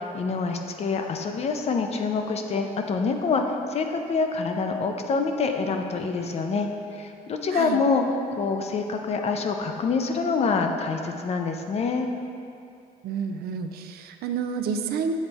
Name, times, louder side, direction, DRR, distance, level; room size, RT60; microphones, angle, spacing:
voice 1, 0.0-8.0 8.3-12.1, left 4 dB, 40° left, 5 dB, 0.5 m, -26 dB
voice 2, 13.0-15.1, right 6 dB, 65° right, 7 dB, 0.4 m, -29 dB
7.2 x 3.9 x 3.4 m, 2.5 s
cardioid pair, 110°, 17 cm